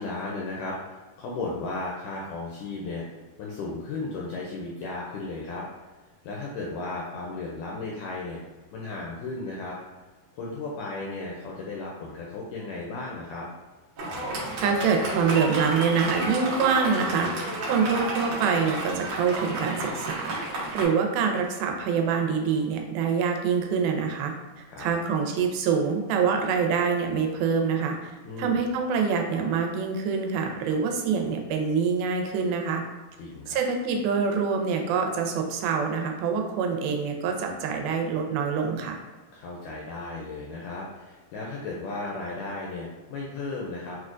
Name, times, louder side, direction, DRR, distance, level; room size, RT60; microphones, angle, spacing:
voice 1, 0.0-5.6 6.3-8.4 8.7-9.8 10.4-13.5 24.6-25.0 28.3-28.6 33.2-33.6 39.3-44.0, left 3 dB, 85° left, -3 dB, 1.8 m, -35 dB
Fireworks, 14.0-20.8, right 2 dB, 70° right, 1.5 m, -31 dB
voice 2, 14.6-17.3 17.7-24.3 24.8-28.1 28.4-32.8 33.5-39.0, right 6 dB, 90° right, 3 dB, 2.3 m, -25 dB
5.9 x 2.2 x 2.4 m, 1.3 s
omnidirectional pair, 4.1 m